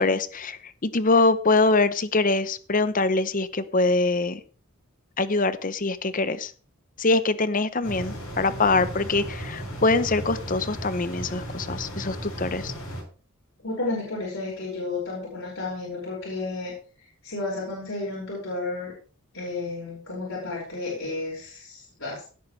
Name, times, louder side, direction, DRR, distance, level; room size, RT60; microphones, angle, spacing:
voice 1, 0.0-4.4 5.2-6.5 7.0-12.7, left 3 dB, 40° left, 13 dB, 0.8 m, -23 dB
sound 1, 7.8-13.0, equal, 90° left, 7.6 m, -35 dB
voice 2, 13.6-16.7 17.2-18.9 19.3-22.3, left 2 dB, 65° left, -5 dB, 5.5 m, -32 dB
16.5 x 9.4 x 3.3 m, 0.39 s
head